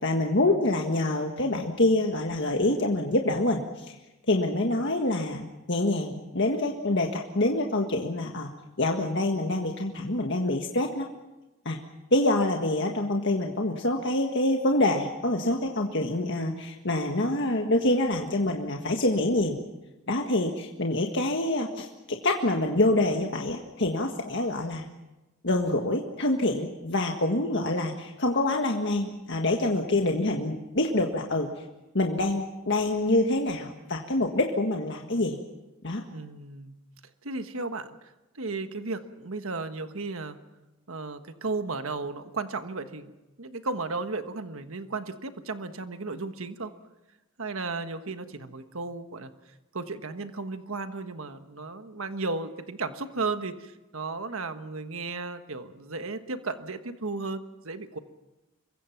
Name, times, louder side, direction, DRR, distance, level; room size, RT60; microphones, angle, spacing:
voice 1, 0.0-4.0 4.3-8.5 8.8-11.1 11.6-11.8 12.1-19.6 20.1-24.9 25.4-31.5 31.9-35.4 35.8-36.0, left 1 dB, 55° left, 2 dB, 1.7 m, -26 dB
voice 2, 36.1-36.8 37.2-38.0 38.3-40.4 40.9-43.1 43.4-46.7 47.4-49.3 49.7-58.0, right 3 dB, 75° right, 9 dB, 1.4 m, -34 dB
26.5 x 23.0 x 5.9 m, 1.0 s
head